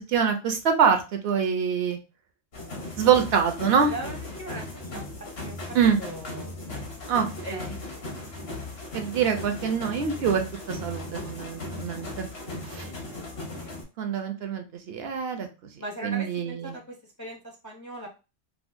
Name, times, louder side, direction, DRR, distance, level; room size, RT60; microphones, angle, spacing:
voice 1, 0.0-2.0 3.0-3.9 5.7-6.0 7.1-7.8 8.9-12.3 12.7-12.9 14.0-15.5 16.0-16.8, right 7 dB, 70° right, 6 dB, 0.8 m, -25 dB
sound 1, 2.5-13.8, left 2 dB, 60° left, 1.2 m, -37 dB
voice 2, 3.9-4.6 4.9-5.6 6.0-7.0 7.4-7.8 12.9-13.0 13.6-13.7 15.8-18.1, right 2 dB, 20° left, -1 dB, 0.5 m, -39 dB
4.7 x 2.0 x 2.5 m, 0.30 s
omnidirectional pair, 1.1 m